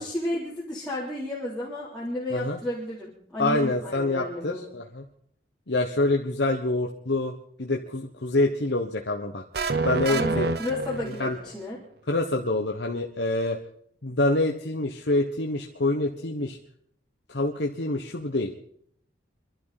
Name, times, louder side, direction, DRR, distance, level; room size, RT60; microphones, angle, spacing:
voice 1, 0.0-4.6 10.1-11.8, left 1 dB, 5° left, -10 dB, 3.6 m, -32 dB
voice 2, 3.4-5.0 5.7-7.3 7.6-9.4 9.8-10.5 11.1-11.4 12.1-13.6 14.0-16.6 17.3-18.5, left 2 dB, 70° left, 2 dB, 1.2 m, -26 dB
sound 1, 9.5-11.5, right 3 dB, 55° right, 0.7 m, -28 dB
26.0 x 12.0 x 4.2 m, 0.63 s
head